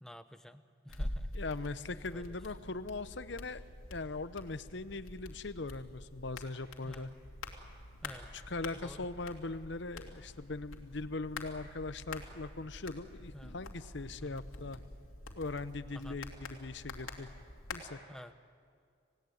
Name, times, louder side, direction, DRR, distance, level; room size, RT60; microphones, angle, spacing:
voice 1, 0.0-1.3 2.1-2.4 6.8-7.1 8.0-8.3 8.8-9.1 13.3-13.5 14.3-14.4 16.0-16.2 18.1-18.3, equal, 5° left, 9 dB, 0.8 m, -50 dB
sound 1, 0.9-17.8, left 2 dB, 80° left, 2.7 m, -46 dB
voice 2, 1.3-3.6 3.9-7.1 8.3-14.8 15.3-17.3 17.7-18.0, left 3 dB, 55° left, 12 dB, 0.8 m, -40 dB
28.0 x 17.0 x 9.3 m, 2.3 s
head